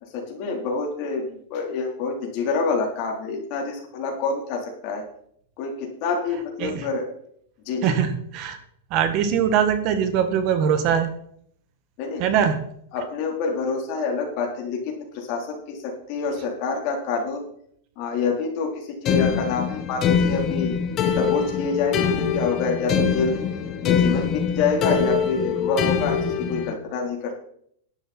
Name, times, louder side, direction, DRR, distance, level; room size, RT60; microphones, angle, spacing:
voice 1, 0.0-5.1 5.6-7.1 7.7-8.0 12.0-12.3 12.9-17.5 18.0-20.8 21.1-23.4 23.8-27.3, left 4 dB, 45° left, 0 dB, 4.1 m, -27 dB
voice 2, 7.8-8.6 8.9-11.1 12.2-12.6, right 8 dB, 40° right, 9 dB, 1.7 m, -22 dB
sound 1, 19.1-26.7, left 7 dB, 25° left, 1.5 m, -23 dB
12.0 x 11.5 x 4.5 m, 0.66 s
supercardioid pair, 150°, 0 cm